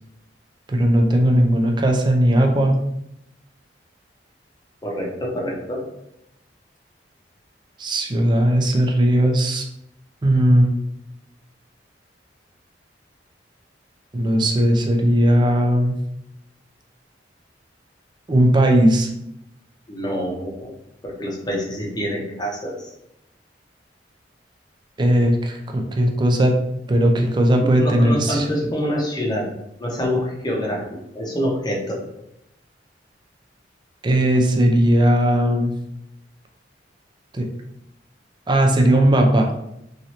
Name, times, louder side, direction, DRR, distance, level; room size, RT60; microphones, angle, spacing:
voice 1, 0.7-2.8 7.8-9.6 10.2-10.7 14.1-15.9 18.3-19.1 25.0-26.5 26.9-28.5 34.0-35.7 37.3-37.5 38.5-39.5, right 1 dB, 25° right, 2 dB, 0.4 m, -17 dB
voice 2, 4.8-5.8 19.9-20.7 21.0-22.9 27.6-29.5 29.8-30.8 31.1-32.0, equal, 25° left, -2 dB, 0.7 m, -26 dB
3.0 x 2.6 x 2.7 m, 0.82 s
head